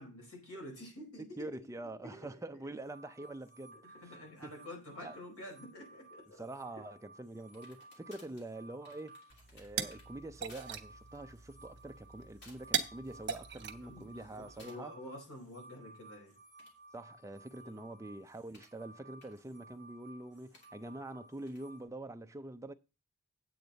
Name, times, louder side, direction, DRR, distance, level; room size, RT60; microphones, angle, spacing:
voice 1, 0.0-1.5 1.8-2.3 2.7-2.8 3.7-6.4 13.8-16.4 17.6-17.9, left 1 dB, 70° left, 4.5 m, -49 dB
voice 2, 1.2-3.8 4.4-4.5 5.0-5.2 6.4-9.2 9.5-14.9 16.9-22.7, right 2 dB, 15° right, 0.5 m, -45 dB
sound 1, 2.8-21.9, right 2 dB, 35° left, 3.0 m, -58 dB
sound 2, 7.5-10.1 10.5-10.7 11.1-11.3 12.0-12.1 12.4-12.8 13.2-13.7 14.6-14.8 16.4-18.8 19.2-19.3 20.5-20.7 21.5-21.6, left 2 dB, 55° left, 2.9 m, -61 dB
sound 3, 9.3-14.6, right 8 dB, 55° right, 1.1 m, -41 dB
8.7 x 8.6 x 4.0 m
head